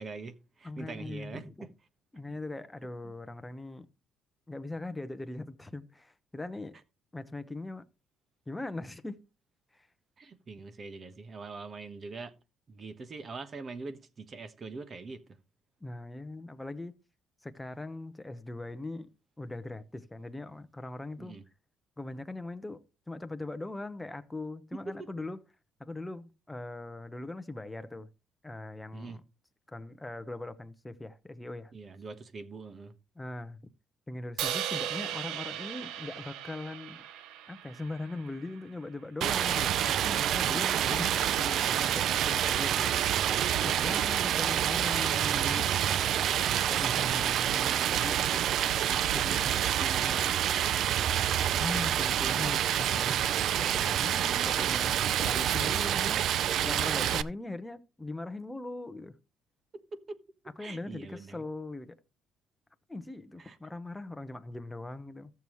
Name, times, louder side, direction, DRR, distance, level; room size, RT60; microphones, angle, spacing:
voice 1, 0.0-1.7 2.3-2.4 3.0-3.1 10.2-12.3 12.7-15.4 21.2-21.4 24.7-25.1 28.9-29.2 31.7-32.9 43.8-44.1 59.7-60.2 60.6-61.4 63.4-63.6, right 3 dB, 35° right, 1.1 m, -43 dB
voice 2, 0.6-1.7 2.1-3.9 4.5-6.8 7.1-7.8 8.5-9.1 9.7-9.9 15.8-17.0 17.4-19.1 19.4-21.4 22.0-25.4 25.8-28.1 28.4-29.2 29.7-31.7 33.2-33.6 34.1-37.0 37.5-45.7 46.6-48.4 48.8-50.5 51.6-53.3 53.6-59.1 60.6-62.0 62.9-65.3, left 2 dB, 10° left, 0.8 m, -40 dB
Crash cymbal, 34.4-38.6, right 10 dB, 85° right, 0.8 m, -37 dB
Stream, 39.2-57.2, right 10 dB, 65° right, 0.5 m, -27 dB
14.5 x 7.0 x 3.1 m
cardioid pair, 120°, 0 cm